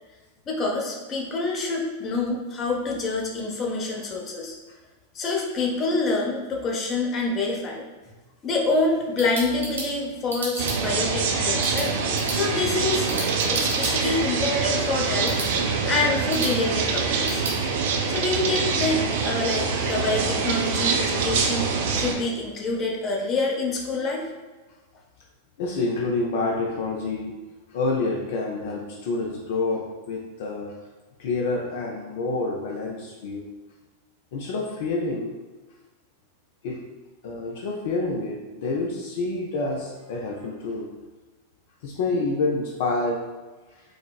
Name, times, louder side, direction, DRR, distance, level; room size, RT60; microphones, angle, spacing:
voice 1, 0.5-4.6 5.1-7.8 8.4-11.9 12.3-13.1 13.5-15.4 15.9-17.4 18.1-24.2, left 3 dB, 30° left, -1 dB, 0.7 m, -26 dB
sound 1, 8.8-17.6, right 2 dB, 85° right, 1.0 m, -36 dB
sound 2, 10.6-22.1, right 5 dB, 60° right, 0.4 m, -25 dB
voice 2, 25.6-27.4 27.7-30.9 31.2-33.5 34.3-35.3 36.6-36.9 37.2-40.9 41.8-43.3, left 3 dB, 60° left, 0 dB, 0.4 m, -28 dB
4.7 x 2.0 x 2.3 m, 1.2 s
hypercardioid pair, 95°, 0 cm